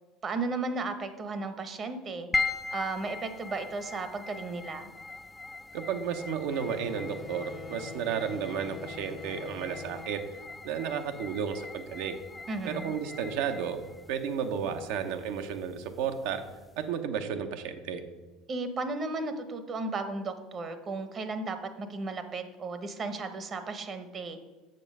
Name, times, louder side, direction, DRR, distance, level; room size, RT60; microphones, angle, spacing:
voice 1, 0.2-2.3 2.7-4.9 12.5-13.0 18.5-24.4, right 3 dB, 40° right, 9 dB, 0.9 m, -35 dB
sound 1, 2.3-16.8, left 4 dB, 15° left, 0.3 m, -40 dB
voice 2, 5.7-10.2 10.6-12.2 12.6-13.8 14.1-16.4 16.8-18.0, right 7 dB, 75° right, 7 dB, 0.7 m, -33 dB
sound 2, 6.5-11.6, left 4 dB, 35° left, 0.9 m, -45 dB
6.9 x 5.3 x 5.4 m, 1.2 s
supercardioid pair, 90°, 0 cm